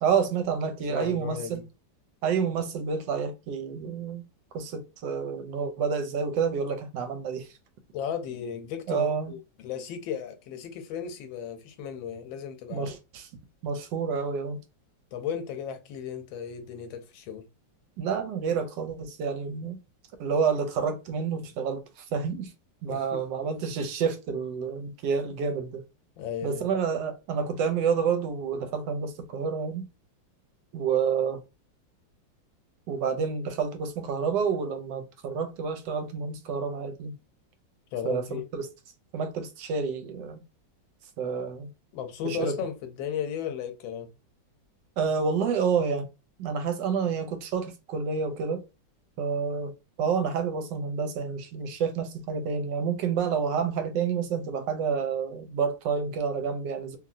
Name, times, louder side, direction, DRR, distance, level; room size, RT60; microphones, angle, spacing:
voice 1, 0.0-1.6 2.2-4.2 4.5-7.5 8.9-9.3 12.7-13.3 13.6-14.6 18.0-19.8 20.2-21.8 22.1-22.5 22.8-25.8 26.4-29.8 30.7-31.4 32.9-37.2 38.0-38.2 38.5-38.7 39.1-40.4 41.2-41.7 42.2-42.6 45.0-46.1 46.4-48.6 49.2-49.7 50.0-57.0, right 6 dB, 75° right, 1.2 m, -29 dB
voice 2, 0.8-1.6 7.9-12.9 15.1-17.5 22.9-23.2 26.2-26.7 37.9-38.4 41.9-44.1, left 8 dB, 85° left, 1.4 m, -35 dB
3.0 x 2.7 x 2.5 m
omnidirectional pair, 2.1 m